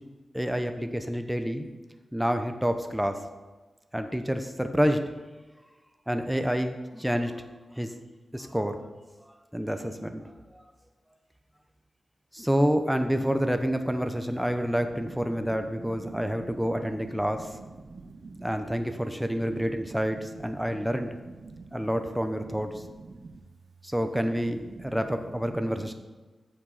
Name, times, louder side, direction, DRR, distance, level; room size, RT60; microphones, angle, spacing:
voice 1, 0.3-1.7 2.1-3.2 3.9-5.0 6.1-7.4 7.7-7.9 8.3-8.8 9.3-10.2 10.5-10.6 12.3-17.5 18.4-21.2 21.7-22.8 23.8-25.9, equal, 5° right, 7 dB, 0.8 m, -28 dB
voice 2, 16.1-16.5 17.8-18.5 21.5-21.8 23.2-23.4 24.8-24.9, right 3 dB, 55° right, 7 dB, 0.7 m, -45 dB
8.9 x 7.2 x 4.1 m, 1.3 s
cardioid pair, 65°, 0 cm